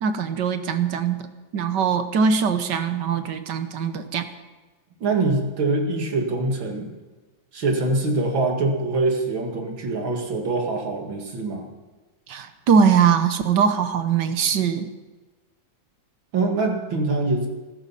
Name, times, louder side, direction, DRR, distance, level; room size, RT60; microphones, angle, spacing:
voice 1, 0.0-1.3 1.5-4.3 12.3-14.9, right 6 dB, 65° right, 9 dB, 1.6 m, -21 dB
voice 2, 5.0-6.9 7.5-11.7 16.3-17.5, right 2 dB, 85° right, 2 dB, 2.9 m, -24 dB
16.0 x 13.5 x 5.6 m, 1.2 s
omnidirectional pair, 2.1 m